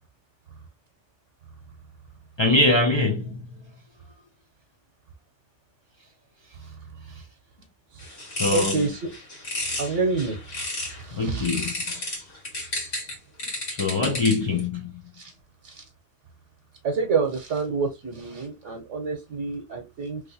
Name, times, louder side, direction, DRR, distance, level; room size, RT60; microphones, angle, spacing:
voice 1, 2.4-3.4 8.4-8.9 11.1-11.7 13.7-14.9, left 2 dB, 50° left, 0.3 m, -23 dB
sound 1, 8.0-11.0 11.5-14.6, left 1 dB, 85° left, 1.8 m, -32 dB
voice 2, 8.5-9.0 9.8-10.4 10.7-11.5 15.2-15.3 15.6-15.8 16.8-20.2, right 4 dB, 90° right, 1.1 m, -28 dB
3.2 x 2.6 x 2.7 m
omnidirectional pair, 1.2 m